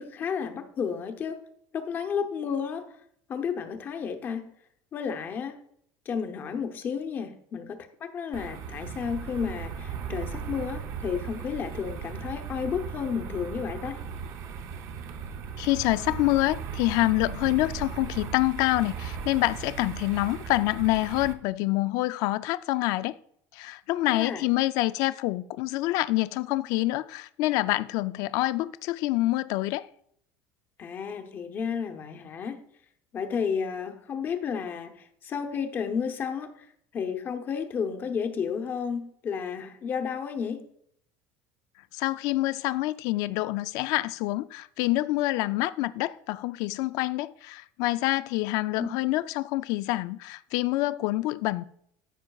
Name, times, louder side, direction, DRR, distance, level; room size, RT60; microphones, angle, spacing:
voice 1, 0.0-1.5 1.7-2.9 3.3-4.5 4.9-5.6 6.1-14.0 24.1-24.4 30.8-32.6 33.1-36.7 36.9-40.6 48.8-48.9, left 6 dB, 30° left, 0.8 m, -32 dB
sound 1, 8.3-21.3, right 6 dB, 45° right, 0.7 m, -37 dB
voice 2, 15.6-23.2 23.5-29.9 41.9-51.6, left 18 dB, 55° left, 0.4 m, -26 dB
13.5 x 5.7 x 2.3 m
cardioid pair, 165°, 7 cm